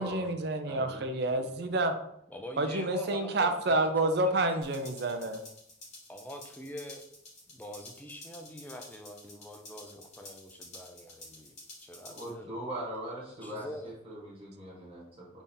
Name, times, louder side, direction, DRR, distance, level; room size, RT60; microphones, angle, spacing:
voice 1, 0.0-2.0 2.6-5.4, right 2 dB, 55° right, 7 dB, 0.5 m, -29 dB
voice 2, 0.6-1.1 12.0-15.4, right 1 dB, 30° right, -5 dB, 1.2 m, -41 dB
voice 3, 2.3-3.8 4.0-4.6 6.1-7.0 7.5-11.6 11.8-12.5 13.4-13.9, equal, 10° left, 4 dB, 0.4 m, -45 dB
sound 1, 4.6-12.3, left 2 dB, 35° left, 1.7 m, -51 dB
3.5 x 3.5 x 4.2 m, 0.76 s
head